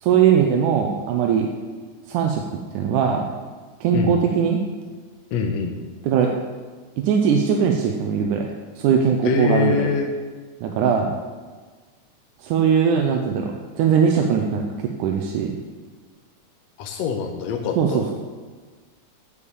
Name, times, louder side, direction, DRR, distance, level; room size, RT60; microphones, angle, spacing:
voice 1, 0.0-1.5 2.1-2.4 2.7-3.3 3.8-4.6 6.0-6.3 7.0-8.5 8.8-9.8 10.6-11.2 12.4-14.7 15.0-15.5 17.8-18.0, right 7 dB, 90° right, 2 dB, 2.2 m, -20 dB
voice 2, 5.3-5.8 9.3-10.1 16.8-18.0, left 5 dB, 70° left, 3 dB, 1.8 m, -24 dB
8.5 x 7.1 x 7.0 m, 1.4 s
omnidirectional pair, 3.5 m